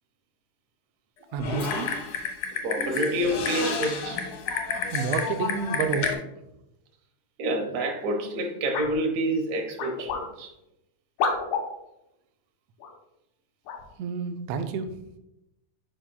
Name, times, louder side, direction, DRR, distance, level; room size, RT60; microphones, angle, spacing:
voice 1, 1.3-1.9 4.9-6.2 14.0-14.9, right 6 dB, 90° right, 6 dB, 1.4 m, -29 dB
Typing, 1.4-6.1, left 5 dB, 70° left, 1.2 m, -30 dB
voice 2, 2.6-4.2 7.4-10.5, right 1 dB, 65° right, 4 dB, 2.0 m, -28 dB
sound 1, 8.7-9.0 9.8-10.3 11.2-11.7 12.8-12.9 13.7-13.9, left 5 dB, 85° left, 2.5 m, -29 dB
10.0 x 5.0 x 2.3 m, 0.88 s
omnidirectional pair, 3.6 m